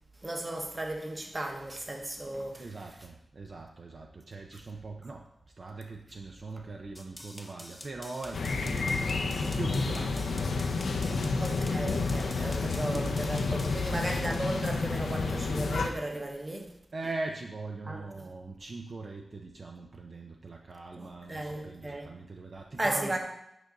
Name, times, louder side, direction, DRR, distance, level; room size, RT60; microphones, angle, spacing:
voice 1, 0.2-2.6 11.4-16.7 17.9-18.0 21.0-22.1 22.8-23.2, right 1 dB, 25° right, 1.2 m, -35 dB
voice 2, 2.6-5.3 5.6-11.4 13.8-14.1 16.9-23.2, right 3 dB, 50° right, 0.6 m, -41 dB
sound 1, 7.0-13.8, left 1 dB, 15° left, 0.9 m, -48 dB
sound 2, 8.3-15.9, left 4 dB, 85° left, 0.7 m, -30 dB
9.1 x 5.3 x 3.8 m
wide cardioid pair, 85°, 0 cm